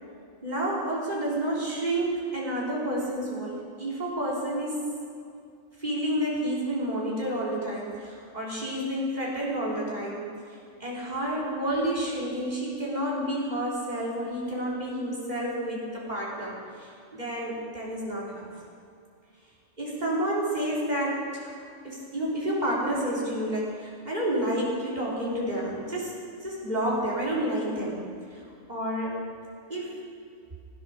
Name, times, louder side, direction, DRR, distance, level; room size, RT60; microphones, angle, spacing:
voice 1, 0.4-4.8 5.8-10.3 10.8-18.4 19.8-21.6 21.8-28.0 28.3-28.4 28.7-29.2 29.7-30.0, right 1 dB, 30° right, -6 dB, 3.7 m, -30 dB
16.5 x 9.8 x 6.5 m, 2.4 s
omnidirectional pair, 1.4 m